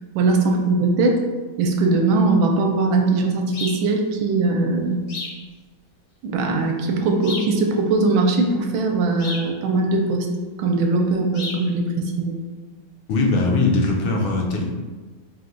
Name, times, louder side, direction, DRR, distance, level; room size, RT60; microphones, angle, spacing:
voice 1, 0.1-1.2 1.6-5.0 6.2-10.3 10.6-12.4, right 3 dB, 80° right, 2 dB, 1.3 m, -20 dB
sound 1, 3.5-3.9 5.1-5.4 7.2-7.6 9.2-9.5 11.3-11.7, left 3 dB, 65° left, 1.1 m, -32 dB
voice 2, 13.1-14.7, left 3 dB, 80° left, 0 dB, 1.5 m, -20 dB
4.7 x 2.2 x 3.8 m, 1.3 s
omnidirectional pair, 2.2 m